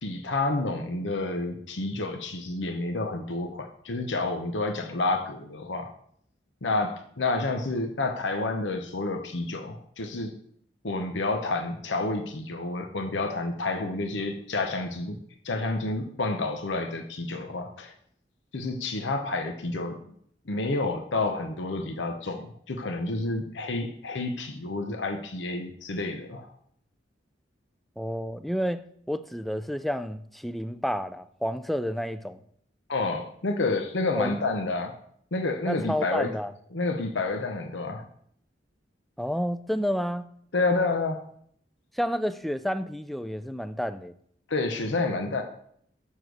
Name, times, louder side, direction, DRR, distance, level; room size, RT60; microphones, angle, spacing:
voice 1, 0.0-5.9 6.6-10.3 10.8-15.2 15.4-17.9 18.5-20.0 20.5-26.5 32.9-34.9 35.3-36.3 36.7-38.0 40.5-41.2 44.5-45.4, left 2 dB, 85° left, 0.9 m, -29 dB
voice 2, 28.0-32.4 34.1-34.4 35.6-36.5 39.2-40.3 41.9-44.1, equal, ahead, 0.4 m, -30 dB
7.2 x 6.5 x 6.2 m
head